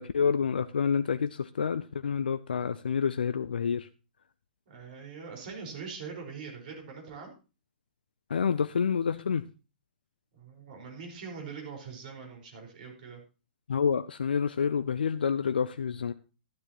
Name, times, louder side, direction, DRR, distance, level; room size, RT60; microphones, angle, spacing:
voice 1, 0.0-3.9 8.3-9.4 13.7-16.1, left 6 dB, 75° left, 12 dB, 0.4 m, -28 dB
voice 2, 4.7-7.3 10.3-13.2, right 5 dB, 55° right, 1 dB, 4.9 m, -42 dB
12.0 x 11.5 x 3.0 m, 0.32 s
figure-of-eight pair, 115°, 5 cm